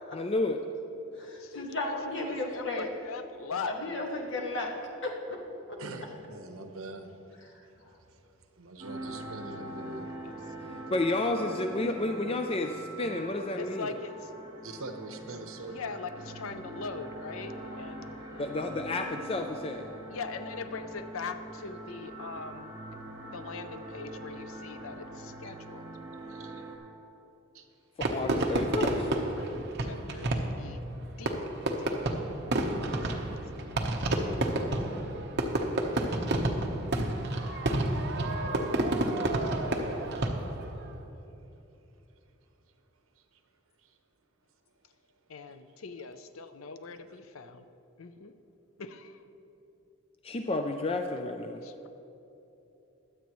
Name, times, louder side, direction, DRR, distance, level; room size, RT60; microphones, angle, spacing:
voice 1, 0.1-0.6 10.9-13.9 18.4-19.9 28.0-29.1 50.2-51.7, left 2 dB, 25° left, 5 dB, 0.4 m, -31 dB
voice 2, 1.1-2.9 3.7-4.7 5.0-5.4 5.7-5.8, left 2 dB, 60° left, 0 dB, 1.7 m, -34 dB
voice 3, 2.1-3.8 4.1-4.2 10.6-11.0 13.6-14.3 15.7-18.5 20.1-22.7 23.3-25.9 29.3-30.8 31.2-31.4 31.8-32.1 32.6-33.7 45.3-47.7 48.0-48.4 48.8-49.2 51.6-51.9, left 4 dB, 80° left, 10 dB, 0.6 m, -41 dB
voice 4, 5.8-10.8 14.6-15.8 25.4-25.5 26.3-26.7 27.5-27.7 43.2-43.4 43.8-44.0 45.5-45.6, right 2 dB, 80° right, 6 dB, 1.0 m, -45 dB
sound 1, 8.8-26.8, right 1 dB, 20° right, 2.5 m, -43 dB
Fireworks, 28.0-40.7, right 1 dB, 55° right, 1.1 m, -30 dB
22.5 x 8.2 x 3.1 m, 2.9 s
head